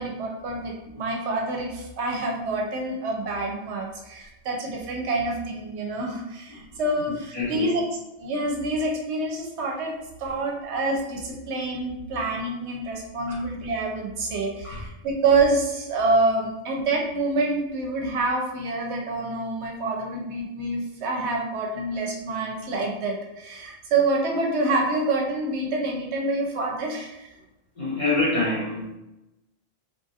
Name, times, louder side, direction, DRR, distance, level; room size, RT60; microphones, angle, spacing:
voice 1, 0.0-7.8 8.2-27.3, right 2 dB, 70° right, 0 dB, 0.9 m, -27 dB
voice 2, 7.3-7.7 10.2-10.3 13.3-13.4 14.6-14.8 27.8-28.9, left 2 dB, 30° left, -7 dB, 0.8 m, -26 dB
3.0 x 2.4 x 2.7 m, 0.95 s
omnidirectional pair, 1.2 m